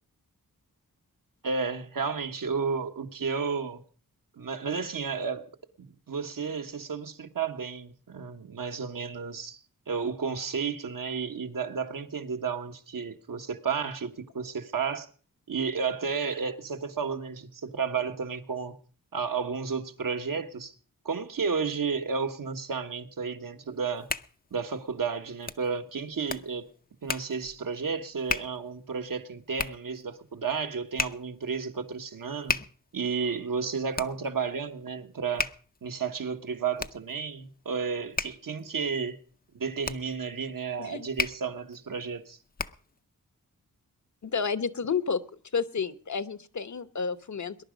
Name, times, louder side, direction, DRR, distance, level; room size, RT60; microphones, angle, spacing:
voice 1, 1.4-3.8 4.4-5.4 6.1-9.6 9.9-15.1 15.5-18.8 19.1-20.7 21.0-24.1 24.5-26.7 27.0-32.6 32.9-35.5 35.8-39.2 39.5-42.4, right 5 dB, 70° right, 1.5 m, -32 dB
Hands, 23.7-43.0, left 4 dB, 25° left, 0.6 m, -37 dB
voice 2, 44.2-45.2 45.5-47.6, left 5 dB, 55° left, 1.0 m, -30 dB
21.0 x 11.0 x 5.2 m
wide cardioid pair, 90°, 35 cm